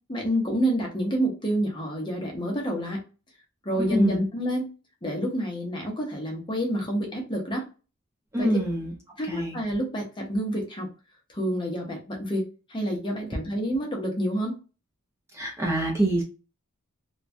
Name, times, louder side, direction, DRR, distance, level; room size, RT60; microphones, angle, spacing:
voice 1, 0.1-3.0 3.6-4.7 5.0-7.7 8.4-8.5 9.2-10.9 11.3-14.6, equal, 20° left, 1 dB, 0.7 m, -28 dB
voice 2, 3.8-4.2 8.3-8.9 9.3-9.6 15.3-16.2, right 1 dB, 10° right, -1 dB, 0.7 m, -25 dB
3.0 x 2.2 x 2.5 m, 0.32 s
head